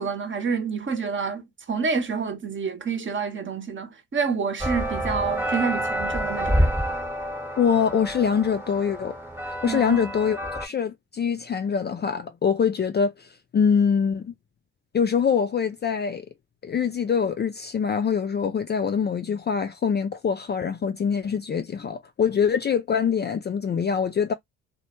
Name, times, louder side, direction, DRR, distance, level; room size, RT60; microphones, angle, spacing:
voice 1, 0.0-6.7 9.6-10.0, right 5 dB, 35° right, 0.8 m, -28 dB
sound 1, 4.6-10.7, equal, 5° right, 0.9 m, -28 dB
voice 2, 7.6-9.2 9.4-14.3 14.9-16.3 16.6-24.3, left 7 dB, 30° left, 0.4 m, -24 dB
2.1 x 2.1 x 2.9 m
hypercardioid pair, 55°, 36 cm